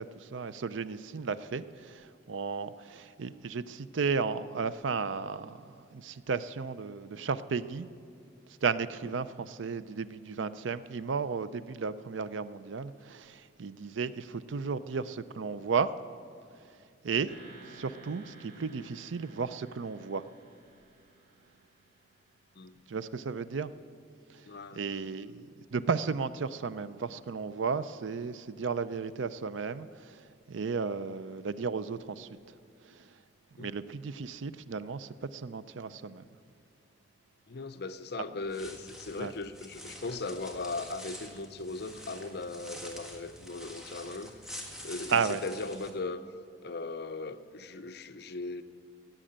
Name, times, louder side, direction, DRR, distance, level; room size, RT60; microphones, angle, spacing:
voice 1, 0.0-7.9 8.6-15.9 17.0-17.3 17.7-20.2 22.9-23.7 24.7-30.2 30.5-32.3 32.9-33.0 33.6-36.3 39.2-39.3 45.1-45.4, right 5 dB, 80° right, 15 dB, 0.5 m, -34 dB
sound 1, 17.3-22.2, right 2 dB, 60° right, 3.7 m, -55 dB
voice 2, 24.5-24.9 33.6-33.7 37.5-44.4 44.8-46.2 46.6-48.6, left 3 dB, 60° left, 10 dB, 0.6 m, -38 dB
sound 2, 38.4-45.9, left 1 dB, 5° right, 1.5 m, -47 dB
16.0 x 7.7 x 8.8 m, 2.4 s
head